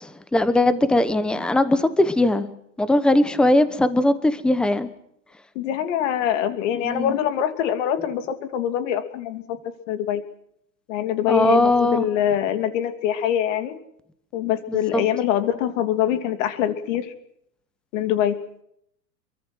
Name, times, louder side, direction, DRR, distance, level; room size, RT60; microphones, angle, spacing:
voice 1, 0.0-2.5 2.8-4.9 6.8-7.1 11.3-12.1 14.7-15.0, left 1 dB, ahead, 13 dB, 1.0 m, -20 dB
voice 2, 5.5-9.6 9.9-10.2 10.9-13.8 14.3-17.1 17.9-18.4, left 10 dB, 45° left, 9 dB, 3.0 m, -24 dB
26.5 x 23.0 x 6.3 m, 0.74 s
hypercardioid pair, 145°, 50 cm